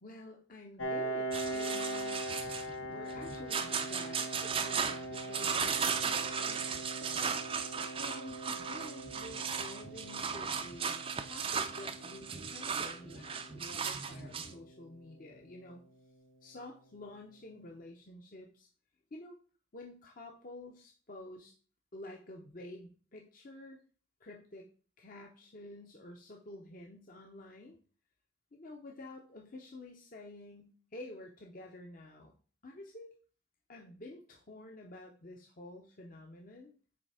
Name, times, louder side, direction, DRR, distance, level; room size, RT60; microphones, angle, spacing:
voice 1, 0.0-2.3 2.9-15.8 16.4-18.7 19.1-19.4 19.7-21.5 21.9-23.8 24.2-24.7 25.0-27.8 28.5-32.3 32.6-33.2 33.7-36.7, left 2 dB, 40° left, 1 dB, 0.8 m, -50 dB
Piano, 0.8-16.1, right 1 dB, 75° left, 1.2 m, -42 dB
sound 1, 1.3-14.5, right 6 dB, 25° right, 0.5 m, -36 dB
8.7 x 3.4 x 4.9 m, 0.40 s
head